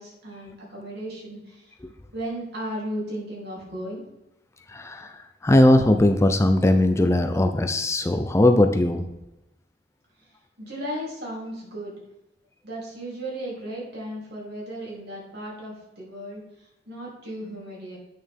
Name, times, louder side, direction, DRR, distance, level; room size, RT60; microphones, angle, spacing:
voice 1, 0.0-1.7 2.1-4.0 10.2-10.3 10.6-12.0 12.6-18.0, right 1 dB, 60° right, -4 dB, 3.4 m, -35 dB
voice 2, 4.7-9.1, left 1 dB, 15° left, 7 dB, 0.4 m, -19 dB
8.6 x 6.5 x 3.6 m, 0.91 s
head